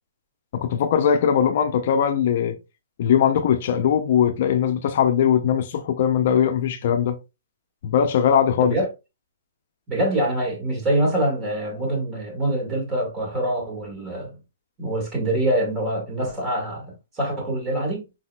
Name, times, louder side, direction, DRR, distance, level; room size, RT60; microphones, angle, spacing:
voice 1, 0.5-2.6 3.0-7.2 7.8-8.8, left 8 dB, 50° left, 0.5 m, -20 dB
voice 2, 9.9-14.4 14.8-18.1, right 1 dB, 20° right, 1.7 m, -25 dB
4.7 x 4.1 x 2.3 m
hypercardioid pair, 160°, 0 cm